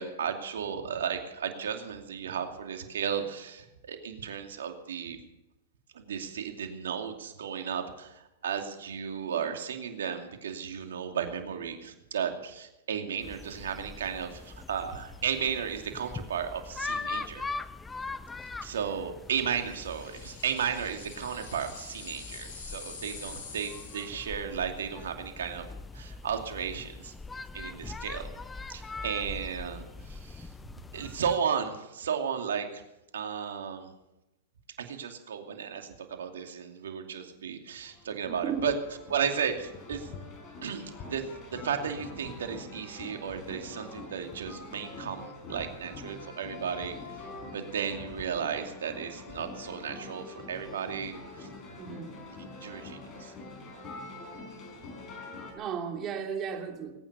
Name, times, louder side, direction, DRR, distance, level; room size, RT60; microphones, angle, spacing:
voice 1, 0.0-5.2 5.9-17.4 18.6-25.7 25.9-27.1 27.5-28.3 28.7-30.5 30.9-32.8 33.1-33.9 34.8-38.7 39.1-40.1 40.6-40.8 41.1-47.0 47.5-51.5 52.6-53.3, right 7 dB, 80° right, 5 dB, 2.6 m, -34 dB
sound 1, 13.2-31.4, left 3 dB, 10° left, 0.6 m, -42 dB
sound 2, 19.5-24.4, left 5 dB, 60° left, 5.7 m, -46 dB
sound 3, 37.8-55.5, left 3 dB, 30° left, 4.4 m, -45 dB
voice 2, 38.3-38.6 51.8-52.1 55.5-56.9, right 7 dB, 30° right, 3 dB, 3.0 m, -34 dB
20.5 x 9.4 x 6.9 m, 0.95 s
hypercardioid pair, 120°, 0 cm